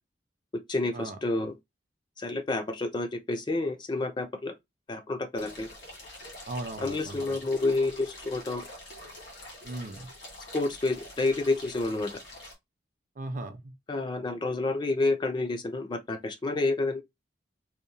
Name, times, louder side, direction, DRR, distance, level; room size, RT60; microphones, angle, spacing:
voice 1, 0.7-1.5 2.2-4.5 4.9-5.7 6.8-8.7 10.5-12.2 13.9-17.0, left 2 dB, 25° left, 0.3 m, -29 dB
sound 1, 5.4-12.5, left 1 dB, 75° left, 1.2 m, -46 dB
voice 2, 6.5-7.4 9.6-10.1 13.2-13.7, right 2 dB, 45° right, 0.5 m, -37 dB
2.7 x 2.0 x 2.5 m
head